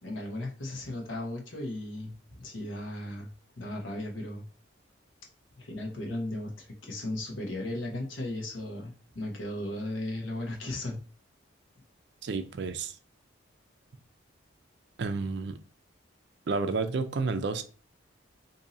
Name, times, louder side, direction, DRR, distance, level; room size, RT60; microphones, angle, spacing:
voice 1, 0.0-3.3 3.6-4.4 5.6-11.0, left 1 dB, 75° left, 1 dB, 1.0 m, -36 dB
voice 2, 12.2-12.9 15.0-15.6 16.5-17.6, right 4 dB, 55° right, 9 dB, 0.4 m, -30 dB
2.7 x 2.6 x 4.0 m, 0.38 s
head